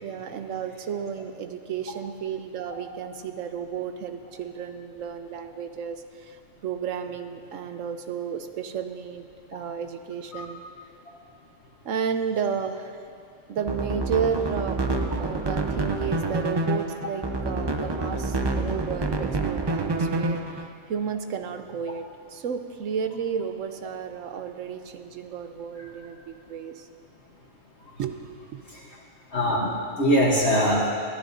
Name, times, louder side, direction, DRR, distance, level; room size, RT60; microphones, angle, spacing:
voice 1, 0.0-10.6 11.8-13.0 13.5-14.8 15.2-26.8 28.0-28.6, right 7 dB, 80° right, 7 dB, 1.1 m, -32 dB
sound 1, 13.6-20.7, right 2 dB, 30° right, 0.5 m, -27 dB
voice 2, 29.3-30.9, equal, 60° left, -4 dB, 1.5 m, -22 dB
22.0 x 14.0 x 2.7 m, 2.4 s
omnidirectional pair, 1.3 m